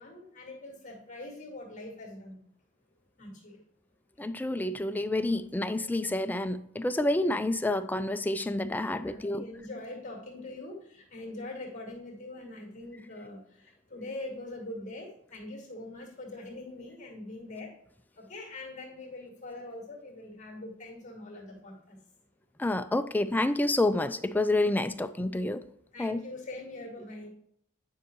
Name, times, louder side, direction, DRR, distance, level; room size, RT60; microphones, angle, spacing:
voice 1, 0.0-2.4 3.2-3.6 9.0-17.7 18.2-22.0 25.9-27.3, left 2 dB, 35° left, -1 dB, 2.3 m, -43 dB
voice 2, 4.2-9.5 22.6-25.6 26.0-26.2, left 2 dB, 10° left, 10 dB, 0.3 m, -28 dB
9.7 x 5.5 x 3.0 m, 0.71 s
head